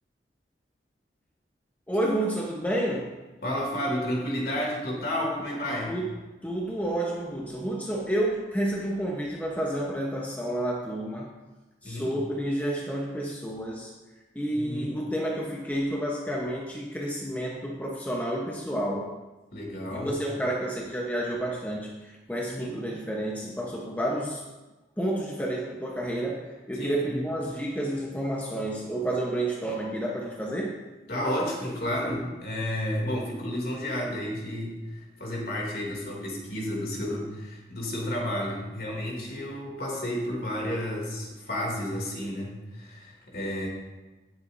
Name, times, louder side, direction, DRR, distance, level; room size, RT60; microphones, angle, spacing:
voice 1, 1.9-3.1 5.9-11.3 11.8-13.9 14.3-19.1 19.9-24.4 25.0-30.8, right 1 dB, 10° left, -3 dB, 1.0 m, -30 dB
voice 2, 3.4-6.0 11.8-12.1 14.5-14.9 19.5-20.1 22.5-22.8 26.7-27.3 31.1-43.7, left 1 dB, 55° left, -2 dB, 2.8 m, -31 dB
18.0 x 7.9 x 2.7 m, 1.1 s
head